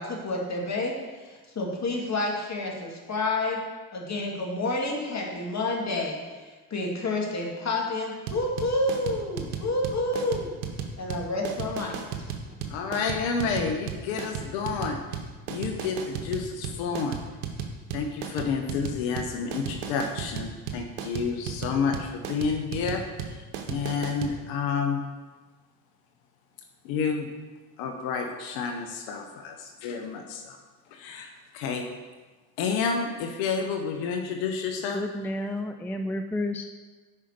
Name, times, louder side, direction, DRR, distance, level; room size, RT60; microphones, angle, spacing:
voice 1, 0.0-3.6 3.9-6.4 6.7-10.5 11.0-12.0, left 2 dB, 35° left, -1 dB, 2.2 m, -29 dB
sound 1, 8.3-24.4, right 7 dB, 85° right, 0.9 m, -34 dB
voice 2, 12.7-15.0 15.5-17.2 17.9-25.0 26.8-27.3 27.8-30.6 30.9-31.8 32.6-35.0, left 5 dB, 75° left, 4 dB, 0.8 m, -30 dB
voice 3, 34.9-36.6, left 1 dB, 5° left, 6 dB, 0.4 m, -31 dB
5.6 x 5.3 x 6.4 m, 1.3 s
hypercardioid pair, 60°, 45 cm